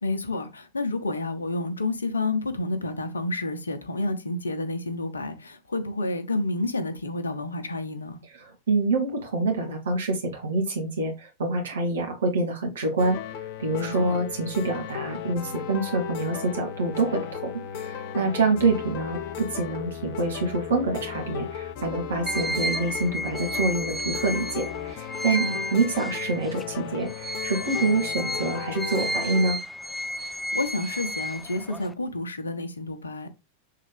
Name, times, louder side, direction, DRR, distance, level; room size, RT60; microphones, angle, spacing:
voice 1, 0.0-8.2 13.7-14.2 25.2-25.7 30.2-33.3, left 2 dB, 75° left, 1.0 m, -30 dB
voice 2, 8.4-29.6, right 3 dB, 65° right, 2.0 m, -26 dB
sound 1, 13.0-29.5, left 9 dB, 45° left, 0.7 m, -35 dB
sound 2, 22.3-26.6 27.0-31.9, equal, ahead, 0.5 m, -32 dB
7.5 x 3.8 x 3.4 m
figure-of-eight pair, 90°, 0 cm